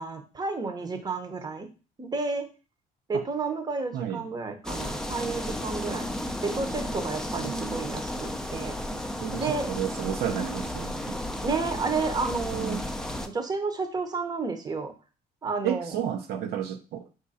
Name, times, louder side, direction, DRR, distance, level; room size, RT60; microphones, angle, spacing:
voice 1, 0.0-1.7 2.0-2.5 3.1-6.1 6.4-8.8 9.3-9.7 11.4-12.8 13.3-14.9 15.4-15.9, right 4 dB, 25° right, 6 dB, 0.8 m, -31 dB
voice 2, 3.9-4.3 7.4-7.9 9.2-11.2 12.5-12.9 15.6-17.0, right 9 dB, 70° right, 5 dB, 0.6 m, -32 dB
sound 1, 4.6-13.3, left 1 dB, 5° left, 0.4 m, -33 dB
4.7 x 2.5 x 4.1 m, 0.34 s
cardioid pair, 110°, 17 cm